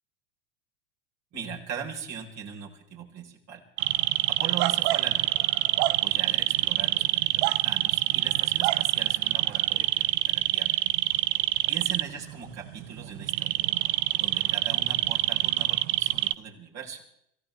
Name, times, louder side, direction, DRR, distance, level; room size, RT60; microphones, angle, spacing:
voice 1, 1.3-3.6 4.3-5.4 6.0-10.8 11.7-13.6 14.2-17.0, right 7 dB, 45° right, -1 dB, 4.5 m, -39 dB
sound 1, 3.8-16.3, right 17 dB, 65° right, 0.6 m, -26 dB
26.5 x 15.5 x 3.5 m, 0.75 s
hypercardioid pair, 100°, 37 cm